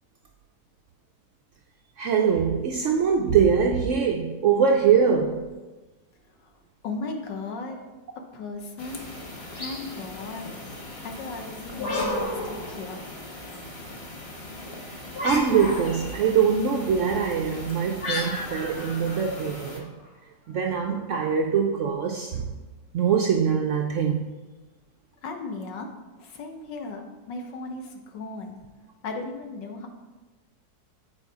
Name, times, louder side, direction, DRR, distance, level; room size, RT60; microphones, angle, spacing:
voice 1, 2.0-5.4 15.2-19.9 20.5-22.5 22.9-24.3, right 6 dB, 85° right, 2 dB, 0.6 m, -23 dB
voice 2, 6.8-7.8 8.3-9.0 9.5-10.5 11.0-13.0 25.2-25.9 26.2-28.6 29.0-29.9, left 3 dB, 80° left, 3 dB, 1.6 m, -36 dB
sound 1, 8.8-19.8, left 1 dB, 25° left, 0.7 m, -40 dB
sound 2, 11.7-13.3 15.1-16.2 18.0-19.9, left 1 dB, 60° left, 2.2 m, -32 dB
8.7 x 4.4 x 4.7 m, 1.2 s
omnidirectional pair, 1.9 m